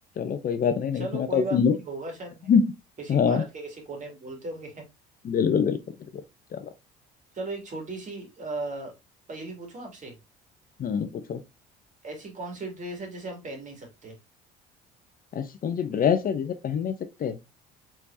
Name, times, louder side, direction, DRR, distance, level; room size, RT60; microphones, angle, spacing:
voice 1, 0.2-1.7 2.5-2.7 3.1-3.4 5.2-5.8 6.5-6.6 10.8-11.4 15.3-17.4, left 7 dB, 45° left, 0.7 m, -24 dB
voice 2, 0.9-2.5 3.0-4.8 7.3-8.9 9.3-10.2 12.0-14.2, right 2 dB, 40° right, 2.5 m, -37 dB
4.3 x 4.2 x 2.7 m
supercardioid pair, 70°, 20 cm